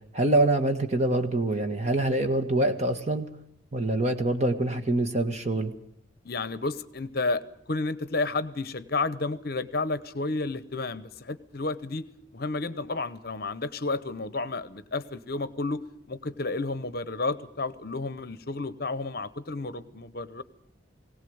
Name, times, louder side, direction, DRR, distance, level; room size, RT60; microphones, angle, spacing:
voice 1, 0.1-3.3 3.7-5.7, right 1 dB, 35° right, 6 dB, 1.7 m, -25 dB
voice 2, 6.2-7.4 7.7-12.0 12.3-15.8 16.1-20.4, left 3 dB, 50° left, 15 dB, 0.8 m, -31 dB
20.5 x 17.5 x 8.0 m, 0.71 s
head